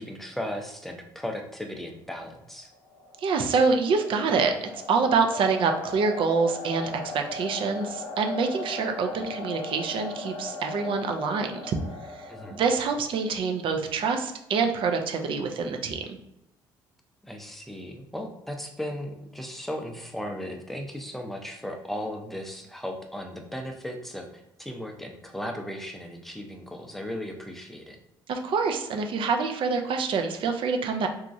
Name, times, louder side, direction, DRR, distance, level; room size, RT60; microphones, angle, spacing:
voice 1, 0.0-2.7 12.3-12.6 17.2-28.0, equal, ahead, 3 dB, 0.6 m, -36 dB
sound 1, 2.6-13.5, left 2 dB, 80° left, 0.7 m, -39 dB
voice 2, 3.2-11.8 12.2-16.2 28.3-31.1, right 4 dB, 60° right, 5 dB, 0.5 m, -26 dB
2.9 x 2.4 x 2.6 m, 0.88 s
supercardioid pair, 70°, 10 cm